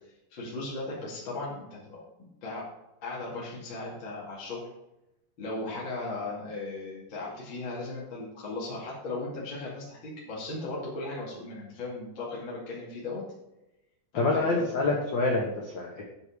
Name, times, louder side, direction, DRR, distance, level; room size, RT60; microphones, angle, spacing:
voice 1, 0.3-2.6 3.0-4.7 5.4-13.2 14.1-14.6, left 2 dB, 35° left, -6 dB, 2.9 m, -37 dB
voice 2, 14.1-16.0, left 3 dB, 70° left, -2 dB, 1.1 m, -27 dB
10.5 x 4.9 x 6.2 m, 0.91 s
omnidirectional pair, 4.2 m